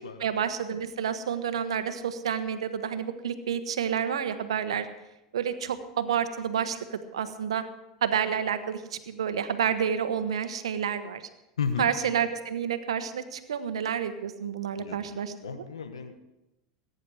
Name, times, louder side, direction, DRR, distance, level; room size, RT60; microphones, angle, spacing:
voice 1, 0.2-4.9 5.3-7.6 8.0-11.2 11.8-15.6, right 8 dB, 85° right, 10 dB, 1.1 m, -29 dB
voice 2, 11.6-11.9 14.8-15.2 15.4-16.2, left 6 dB, 90° left, 9 dB, 1.2 m, -33 dB
20.5 x 9.8 x 4.9 m, 0.94 s
hypercardioid pair, 90°, 3 cm